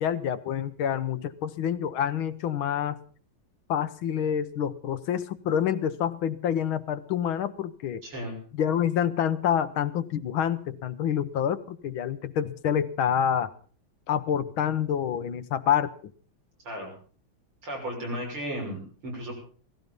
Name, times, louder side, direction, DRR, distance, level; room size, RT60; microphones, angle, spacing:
voice 1, 0.0-3.0 3.7-8.0 8.5-13.5 14.1-15.9, left 9 dB, 75° left, 13 dB, 1.8 m, -27 dB
voice 2, 8.0-8.4 16.6-16.9 17.6-19.3, equal, 90° right, -1 dB, 7.5 m, -34 dB
17.5 x 15.5 x 5.3 m, 0.43 s
omnidirectional pair, 2.3 m